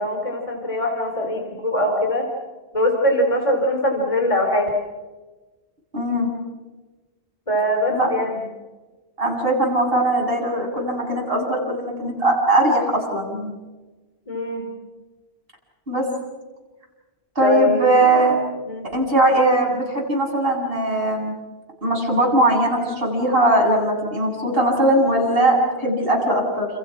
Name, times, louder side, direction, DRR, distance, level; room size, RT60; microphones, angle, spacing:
voice 1, 0.0-2.3 2.7-4.7 7.5-8.4 14.3-14.7 17.4-17.9 18.6-18.9, equal, 30° left, 2 dB, 3.8 m, -22 dB
voice 2, 5.9-6.3 7.9-8.1 9.2-13.6 15.9-16.1 17.3-18.4 18.9-21.3 21.8-26.7, right 1 dB, 55° right, -1 dB, 8.2 m, -20 dB
29.5 x 29.5 x 6.0 m, 1.2 s
omnidirectional pair, 1.1 m